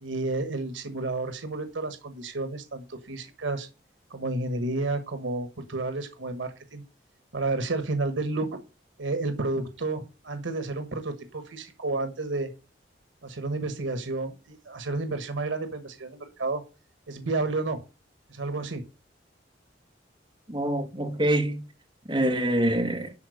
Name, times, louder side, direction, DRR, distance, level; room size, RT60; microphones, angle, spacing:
voice 1, 0.0-3.7 4.1-6.8 7.3-8.6 9.0-12.5 13.2-16.6 17.1-17.8 18.3-18.8, right 2 dB, 85° right, 1.3 m, -31 dB
voice 2, 20.5-21.6 22.1-23.1, right 1 dB, 25° right, 1.7 m, -25 dB
11.5 x 4.2 x 6.5 m
head